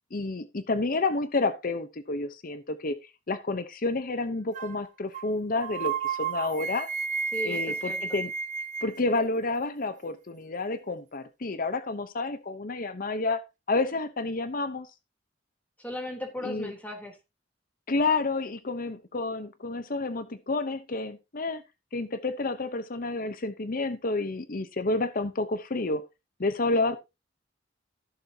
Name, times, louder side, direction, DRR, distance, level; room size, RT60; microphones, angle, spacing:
voice 1, 0.1-3.0 3.3-6.9 7.4-8.3 8.8-13.4 13.7-14.9 16.4-16.7 17.9-21.6 21.9-26.0 26.4-27.0, left 3 dB, 50° left, 0.8 m, -29 dB
sound 1, 4.5-4.8 5.1-5.3 5.6-9.0, right 6 dB, 45° right, 1.0 m, -32 dB
voice 2, 7.3-8.2 15.8-17.2 26.7-26.8, left 1 dB, 10° left, 3.3 m, -37 dB
15.5 x 7.1 x 2.8 m
head